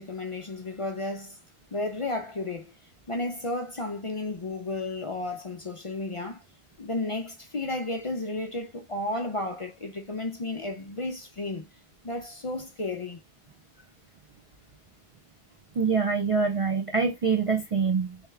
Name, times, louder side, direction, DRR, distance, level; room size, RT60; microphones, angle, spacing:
voice 1, 0.0-1.4 1.7-2.7 3.1-6.4 6.8-11.7 12.0-13.2, left 2 dB, 40° left, 0.5 m, -33 dB
voice 2, 15.8-18.2, right 5 dB, 50° right, 0.4 m, -25 dB
3.4 x 2.7 x 3.3 m
omnidirectional pair, 1.1 m